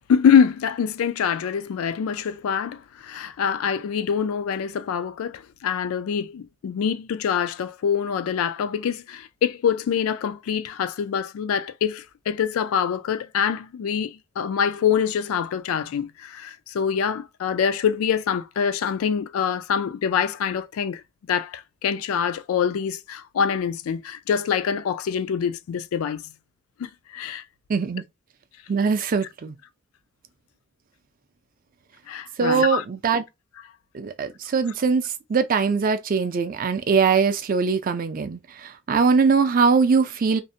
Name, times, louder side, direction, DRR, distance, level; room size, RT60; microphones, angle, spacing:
voice 1, 0.1-21.0 21.3-26.3 26.8-27.4 32.1-32.8, left 7 dB, 85° left, 0.3 m, -25 dB
voice 2, 27.7-28.0 28.7-29.5 32.4-33.2 33.9-40.4, right 5 dB, 40° right, 0.4 m, -22 dB
2.6 x 2.1 x 2.6 m
head